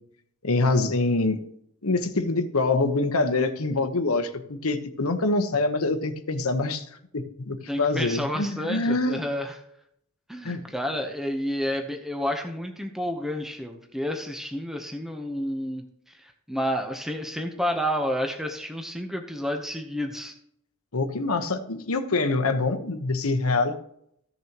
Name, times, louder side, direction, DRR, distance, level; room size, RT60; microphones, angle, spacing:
voice 1, 0.4-1.4 1.8-6.9 7.1-9.2 10.4-10.6 20.9-23.7, left 3 dB, 85° left, 7 dB, 1.1 m, -25 dB
voice 2, 7.7-9.6 10.3-20.3, equal, ahead, 4 dB, 0.9 m, -30 dB
15.0 x 6.8 x 3.0 m, 0.72 s
head